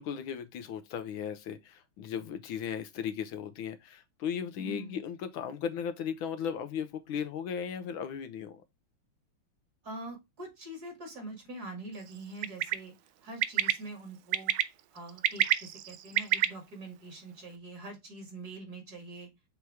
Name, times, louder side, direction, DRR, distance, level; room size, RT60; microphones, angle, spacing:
voice 1, 0.0-8.6, left 8 dB, 75° left, 1.4 m, -36 dB
voice 2, 4.6-5.0 9.8-12.9 13.2-14.6 14.9-19.3, right 2 dB, 45° right, 2.6 m, -44 dB
Bird, 12.4-12.7 13.4-13.7 14.3-14.6 15.1-16.5, right 13 dB, 75° right, 1.0 m, -26 dB
6.8 x 3.0 x 4.6 m
omnidirectional pair, 2.4 m